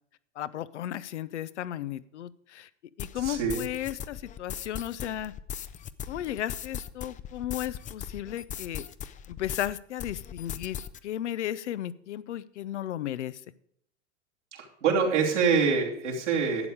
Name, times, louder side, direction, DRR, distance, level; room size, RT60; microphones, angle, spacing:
voice 1, 0.4-2.7 3.0-5.3 6.1-8.9 9.3-10.8 11.0-13.4, left 12 dB, 75° left, 16 dB, 0.7 m, -34 dB
sound 1, 3.0-9.7 10.0-11.0, left 8 dB, 20° left, 0.5 m, -39 dB
voice 2, 3.1-3.6 14.5-16.7, right 5 dB, 80° right, -3 dB, 3.0 m, -25 dB
12.0 x 8.3 x 4.9 m, 0.69 s
hypercardioid pair, 85°, 35 cm